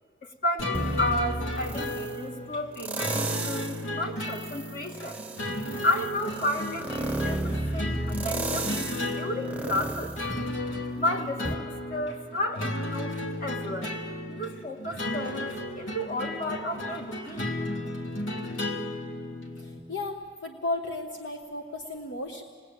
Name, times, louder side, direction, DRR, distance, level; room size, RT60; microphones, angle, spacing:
voice 1, 0.2-5.2 5.8-10.2 11.0-13.9 14.3-17.5, left 1 dB, 45° left, 2 dB, 2.3 m, -32 dB
sound 1, 0.6-19.8, left 1 dB, 85° left, 2.4 m, -34 dB
sound 2, 0.7-2.2 2.8-3.8 4.3-11.0 11.4-11.5, right 2 dB, 5° right, 0.9 m, -33 dB
voice 2, 19.6-22.4, left 2 dB, 65° left, 3 dB, 1.3 m, -34 dB
30.0 x 20.5 x 8.9 m, 2.2 s
head